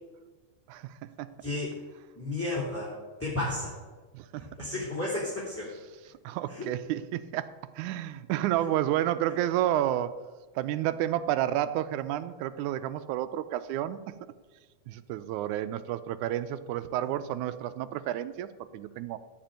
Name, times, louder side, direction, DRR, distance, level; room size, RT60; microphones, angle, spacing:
voice 1, 0.7-1.3 4.1-4.5 6.2-10.2 10.6-14.1 14.9-19.2, right 12 dB, 85° right, 12 dB, 2.1 m, -31 dB
voice 2, 1.4-1.7 2.1-2.9 3.2-3.7 4.3-5.7 6.5-6.7, left 2 dB, 5° left, -7 dB, 2.8 m, -33 dB
15.0 x 5.2 x 9.0 m, 1.3 s
omnidirectional pair, 3.5 m